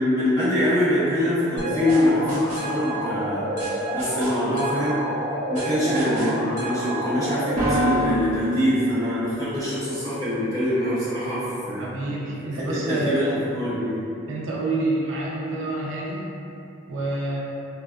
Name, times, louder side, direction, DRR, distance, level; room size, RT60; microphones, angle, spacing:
voice 1, 0.0-3.5 3.9-5.0 5.5-11.9 12.4-13.9, left 1 dB, 20° right, -17 dB, 1.2 m, -24 dB
sound 1, 1.6-9.4, equal, 40° right, 0.8 m, -27 dB
voice 2, 11.8-13.3 14.3-16.2 16.9-17.4, right 2 dB, 90° right, -4 dB, 0.5 m, -27 dB
2.5 x 2.3 x 2.3 m, 2.7 s
head